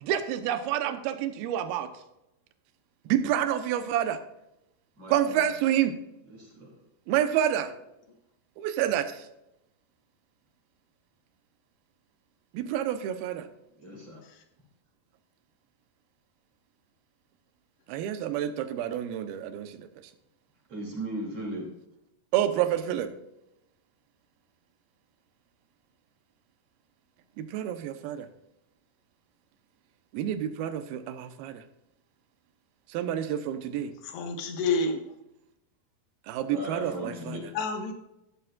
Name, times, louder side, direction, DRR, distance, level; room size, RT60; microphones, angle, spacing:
voice 1, 0.0-1.9 3.1-4.2 5.1-5.9 7.1-7.7 8.6-9.1 12.5-13.4 17.9-19.9 22.3-23.1 27.4-28.3 30.1-31.6 32.9-33.9 36.3-37.4, right 10 dB, 75° right, 9 dB, 2.6 m, -28 dB
voice 2, 5.0-5.4 6.3-6.8 13.8-14.2 20.7-21.7 36.5-37.4, right 1 dB, 40° right, -2 dB, 3.3 m, -37 dB
voice 3, 34.0-35.0 37.5-37.9, left 3 dB, 85° left, 4 dB, 3.6 m, -29 dB
14.0 x 11.5 x 2.4 m, 0.86 s
omnidirectional pair, 4.8 m